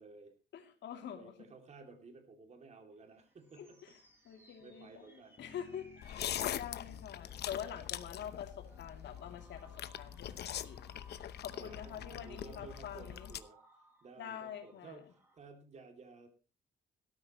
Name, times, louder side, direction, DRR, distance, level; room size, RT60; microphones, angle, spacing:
voice 1, 0.0-0.3 1.2-3.8 4.6-5.4 11.6-13.6 14.0-16.3, right 4 dB, 40° right, 5 dB, 2.7 m, -54 dB
voice 2, 0.5-1.4 3.6-3.9 4.2-5.1 5.4-10.8 11.4-13.3 14.2-15.0, left 9 dB, 85° left, 4 dB, 2.8 m, -46 dB
sound 1, 3.0-15.4, right 1 dB, 15° right, 5.2 m, -65 dB
sound 2, 5.4-9.3, left 6 dB, 40° left, 1.7 m, -62 dB
sound 3, 6.0-13.4, left 10 dB, 70° left, 0.9 m, -42 dB
17.5 x 13.0 x 3.1 m, 0.34 s
wide cardioid pair, 165°, 18 cm